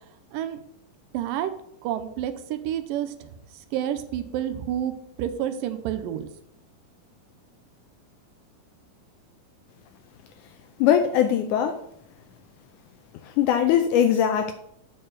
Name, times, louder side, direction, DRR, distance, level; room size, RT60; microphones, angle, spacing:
voice 1, 1.1-1.5 1.8-3.3 3.7-4.9 5.2-6.3, right 11 dB, 85° right, 9 dB, 2.4 m, -29 dB
voice 2, 10.8-11.8 13.4-14.5, left 9 dB, 80° left, 7 dB, 2.0 m, -20 dB
8.4 x 4.5 x 6.6 m, 0.72 s
omnidirectional pair, 3.8 m